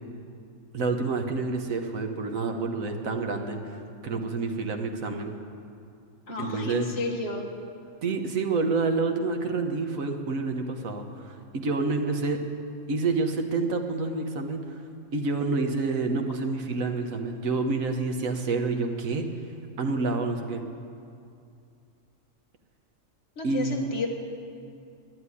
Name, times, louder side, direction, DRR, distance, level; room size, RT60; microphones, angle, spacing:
voice 1, 0.7-5.3 6.4-6.9 8.0-12.4 12.9-14.8 15.1-19.3 19.8-20.6 23.4-23.9, right 3 dB, 85° right, 4 dB, 1.5 m, -28 dB
voice 2, 6.3-7.4 23.4-24.1, left 3 dB, 50° left, 0 dB, 1.8 m, -31 dB
11.0 x 11.0 x 9.7 m, 2.5 s
omnidirectional pair, 1.4 m